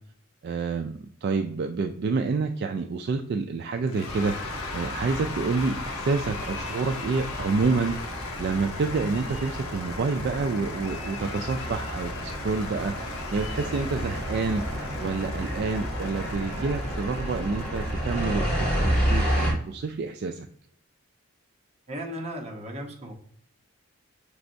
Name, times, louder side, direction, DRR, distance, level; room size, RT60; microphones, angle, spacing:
voice 1, 0.4-14.6 15.0-20.5, right 4 dB, 50° right, 6 dB, 0.3 m, -28 dB
Cheering / Applause / Crowd, 3.9-19.5, left 4 dB, 85° left, 0.7 m, -39 dB
sound 1, 4.1-19.5, equal, 5° left, 1.7 m, -31 dB
voice 2, 21.9-23.1, equal, 30° right, 0 dB, 0.9 m, -36 dB
6.0 x 3.3 x 2.6 m, 0.64 s
head